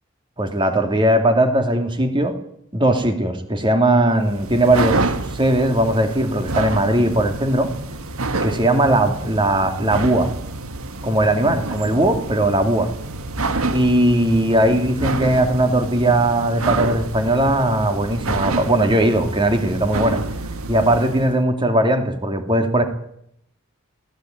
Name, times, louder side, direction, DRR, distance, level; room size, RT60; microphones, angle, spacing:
voice 1, 0.4-2.4 2.7-5.0 5.3-7.7 8.4-10.3 11.0-12.9 13.7-20.2 20.7-22.8, right 1 dB, 25° right, 6 dB, 2.7 m, -18 dB
sound 1, 4.2-21.4, right 2 dB, 85° right, 1.8 m, -28 dB
22.0 x 17.0 x 9.4 m, 0.74 s
head